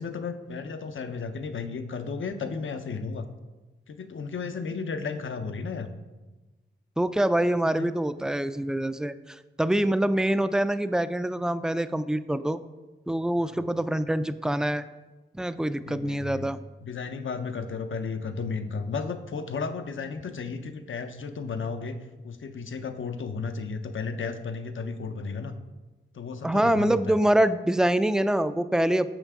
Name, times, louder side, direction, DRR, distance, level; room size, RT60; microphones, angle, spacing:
voice 1, 0.0-3.3 3.9-5.9 7.6-8.0 13.4-13.6 15.8-16.5 16.8-21.9 22.2-25.5 26.1-27.1, left 5 dB, 70° left, 8 dB, 0.7 m, -34 dB
voice 2, 7.0-12.6 13.1-14.9 15.3-16.6 26.4-29.1, right 1 dB, 5° right, 13 dB, 0.4 m, -25 dB
9.0 x 6.7 x 3.6 m, 1.2 s
cardioid pair, 65°, 21 cm